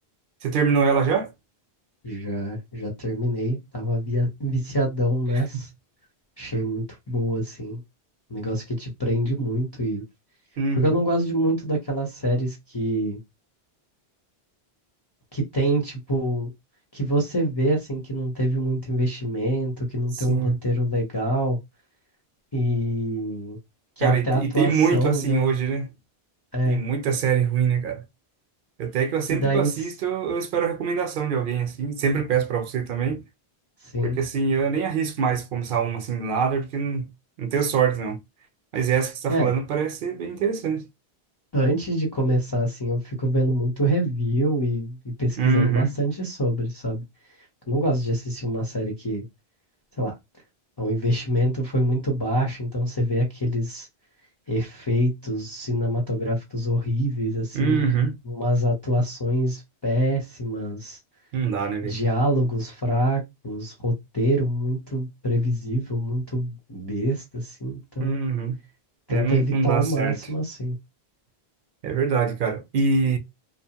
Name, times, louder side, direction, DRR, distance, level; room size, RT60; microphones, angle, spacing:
voice 1, 0.4-1.3 10.6-11.0 20.1-20.6 24.0-25.9 26.7-28.0 28.8-33.2 34.0-37.1 37.4-38.2 38.7-40.8 45.4-45.9 57.5-58.1 61.3-62.0 68.0-68.6 69.1-70.2 71.8-73.2, right 6 dB, 60° right, 0.6 m, -24 dB
voice 2, 2.0-5.7 6.4-7.8 8.3-10.0 10.7-13.2 15.3-16.5 16.9-21.6 22.5-23.6 24.0-25.5 26.5-26.8 29.3-29.7 33.9-34.2 39.3-39.5 41.5-47.0 47.7-49.2 50.0-50.1 50.8-53.9 54.5-58.0 58.2-61.0 61.8-68.2 69.1-70.8, right 1 dB, 30° left, 0.6 m, -25 dB
2.7 x 2.0 x 2.8 m
omnidirectional pair, 1.1 m